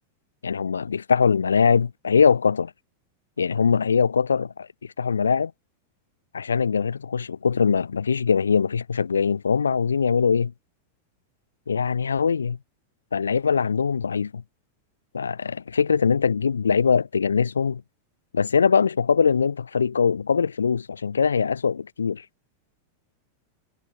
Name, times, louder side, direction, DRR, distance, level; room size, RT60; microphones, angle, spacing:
voice 1, 0.4-2.7 3.4-4.7 5.0-5.5 6.3-10.5 11.7-12.6 13.1-14.4 15.1-17.8 18.3-22.2, left 6 dB, 70° left, 0.3 m, -22 dB
figure-of-eight pair, 90°, 0 cm